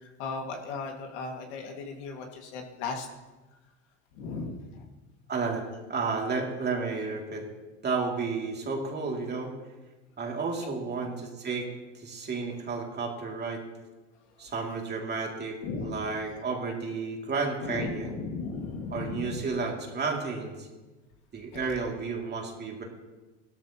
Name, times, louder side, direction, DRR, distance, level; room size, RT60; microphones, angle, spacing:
voice 1, 0.2-3.1 4.2-4.6 10.6-10.7 15.6-16.0 17.6-19.4, left 4 dB, 75° left, 2 dB, 2.1 m, -36 dB
voice 2, 5.3-7.5 7.8-9.5 10.2-11.7 11.9-13.6 14.4-18.1 18.9-20.7 21.3-22.8, right 4 dB, 30° right, 0 dB, 2.6 m, -32 dB
16.5 x 13.0 x 3.0 m, 1.2 s
supercardioid pair, 100°, 34 cm